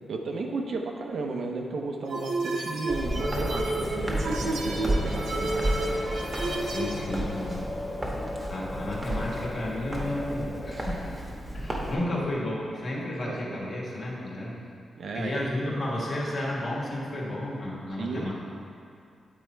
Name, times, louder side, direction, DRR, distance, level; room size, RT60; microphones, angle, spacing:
voice 1, 0.1-6.0 8.8-8.9 12.1-12.3 13.0-13.8 15.0-15.4 18.0-18.3, right 3 dB, 60° right, 2 dB, 0.6 m, -34 dB
sound 1, 2.1-7.0, right 2 dB, 80° right, 1.0 m, -31 dB
sound 2, 2.9-10.7, left 1 dB, 15° left, 0.8 m, -37 dB
Walk footsteps, 2.9-11.9, right 1 dB, 20° right, 1.0 m, -33 dB
voice 2, 6.6-7.6 8.5-11.2 11.5-14.6 15.1-18.3, left 1 dB, 50° left, -4 dB, 1.5 m, -32 dB
8.5 x 4.3 x 4.4 m, 2.4 s
wide cardioid pair, 145°, 0 cm